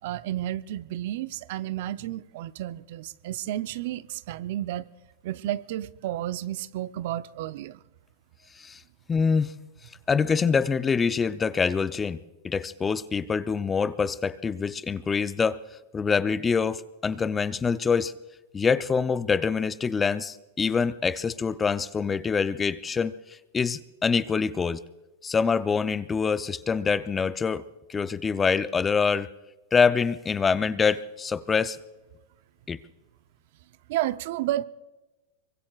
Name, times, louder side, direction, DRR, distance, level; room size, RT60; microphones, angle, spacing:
voice 1, 0.0-4.9 5.2-7.8 33.9-34.6, right 13 dB, 65° right, 0.6 m, -31 dB
voice 2, 9.1-9.5 10.1-12.2 12.4-15.6 15.9-18.1 18.5-24.8 25.2-29.3 29.7-31.8 32.7-32.8, left 5 dB, 20° left, 0.6 m, -25 dB
24.5 x 23.5 x 2.4 m
hypercardioid pair, 115°, 0 cm